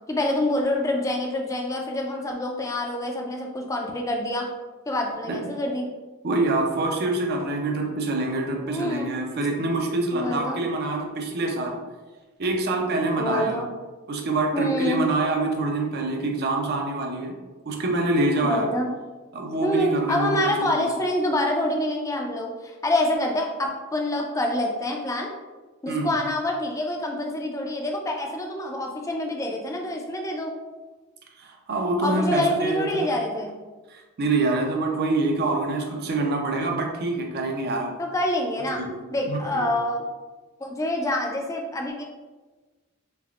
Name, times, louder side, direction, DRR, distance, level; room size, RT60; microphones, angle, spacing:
voice 1, 0.1-4.5 4.9-5.9 8.6-9.2 10.1-10.6 13.2-13.7 14.5-15.1 18.4-18.9 19.6-25.3 25.8-30.5 32.0-33.6 38.0-38.8 39.1-40.0 40.6-42.0, left 1 dB, 15° left, 1 dB, 0.4 m, -26 dB
voice 2, 6.2-11.8 12.4-13.6 14.1-17.3 17.7-18.7 19.3-20.8 25.9-26.1 31.4-33.1 33.9-38.0 38.7-39.0 39.3-39.7, right 2 dB, 45° right, 2 dB, 0.5 m, -25 dB
3.3 x 3.2 x 2.4 m, 1.3 s
head